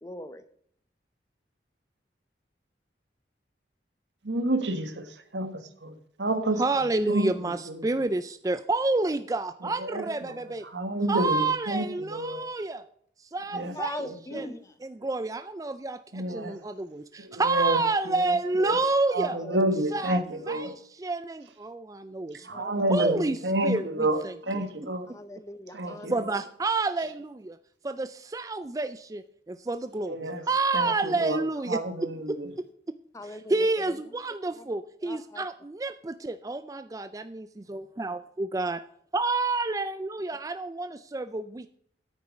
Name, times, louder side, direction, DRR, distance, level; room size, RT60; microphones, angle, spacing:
voice 1, 0.0-0.4 13.7-14.6 19.4-19.6 22.4-22.9 25.1-26.2 30.8-30.9 33.1-34.0 34.5-34.6 35.0-35.4, left 1 dB, 15° left, 0.7 m, -40 dB
voice 2, 4.2-6.6 7.1-7.8 9.8-10.4 10.6-12.4 13.5-13.7 14.0-14.1 16.1-16.6 17.2-17.8 18.1-18.2 18.6-18.8 19.1-20.7 22.4-25.1 25.7-26.1 30.1-30.4 30.7-31.4 31.7-32.5, right 1 dB, 85° right, 1.4 m, -29 dB
voice 3, 6.6-10.7 11.1-12.9 13.2-14.0 14.3-14.5 14.8-19.4 19.9-22.6 22.9-24.6 26.1-27.6 27.8-31.8 32.3-32.4 33.2-38.8 39.1-41.7, right 3 dB, 20° right, 0.4 m, -29 dB
9.6 x 8.7 x 5.1 m
head